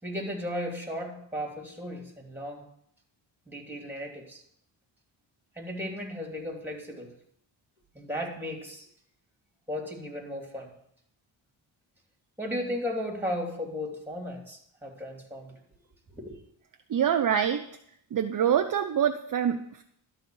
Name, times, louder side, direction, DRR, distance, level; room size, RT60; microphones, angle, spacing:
voice 1, 0.0-2.6 3.5-4.4 5.5-7.1 7.9-8.9 9.7-10.7 12.4-15.5 16.1-16.4, left 1 dB, 5° right, 1 dB, 2.9 m, -35 dB
voice 2, 16.9-17.6 18.1-19.8, right 8 dB, 45° right, 7 dB, 0.6 m, -25 dB
12.5 x 4.2 x 7.7 m, 0.69 s
cardioid pair, 80°, 48 cm